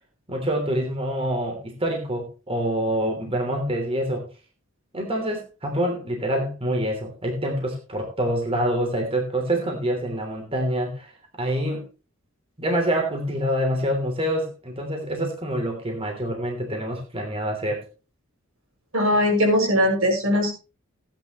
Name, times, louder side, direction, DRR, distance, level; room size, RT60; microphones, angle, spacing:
voice 1, 0.3-4.2 4.9-11.1 11.4-11.8 12.6-17.8, equal, 30° right, 2 dB, 3.2 m, -26 dB
voice 2, 18.9-20.5, equal, 80° right, 1 dB, 6.2 m, -20 dB
16.0 x 10.5 x 3.1 m, 0.32 s
head